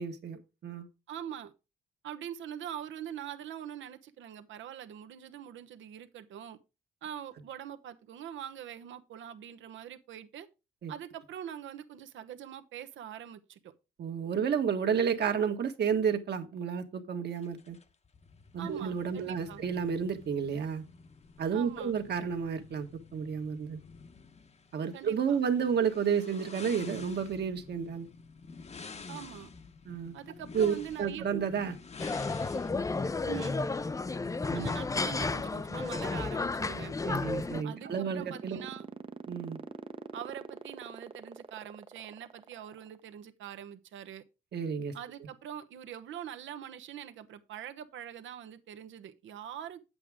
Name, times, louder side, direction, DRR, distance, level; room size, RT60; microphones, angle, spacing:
voice 1, 0.0-0.9 10.8-10.9 14.0-17.8 18.5-20.8 21.4-23.8 24.7-28.1 29.9-30.2 30.5-31.8 34.5-34.7 37.0-38.7 39.3-39.6 44.5-44.9, right 7 dB, 55° right, 1.6 m, -31 dB
voice 2, 1.1-1.5 2.0-6.6 7.0-10.5 10.9-13.7 18.6-19.6 21.5-21.9 24.9-25.4 29.1-29.5 30.1-31.2 33.3-33.7 34.5-36.9 37.6-38.9 40.1-44.2 44.9-49.8, right 10 dB, 75° right, 1.0 m, -43 dB
sound 1, 17.3-32.7, left 4 dB, 35° left, 1.0 m, -50 dB
sound 2, 32.0-37.6, left 3 dB, 15° left, 0.5 m, -32 dB
sound 3, 36.7-43.0, right 5 dB, 25° right, 0.7 m, -44 dB
8.7 x 7.8 x 3.6 m
cardioid pair, 90°, 20 cm